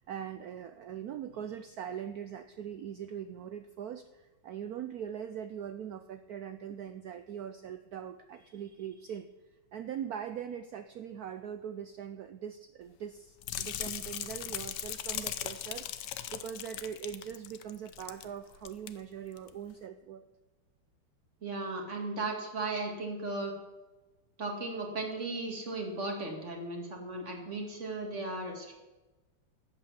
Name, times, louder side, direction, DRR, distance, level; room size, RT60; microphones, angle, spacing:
voice 1, 0.0-20.2, right 9 dB, 80° right, 10 dB, 0.8 m, -41 dB
sound 1, 13.4-18.3 18.5-18.9 19.4-19.5, left 11 dB, 70° left, 1.2 m, -38 dB
voice 2, 21.4-23.5 24.4-28.7, right 2 dB, 35° right, 2 dB, 2.3 m, -36 dB
12.0 x 8.3 x 7.4 m, 1.1 s
omnidirectional pair, 2.2 m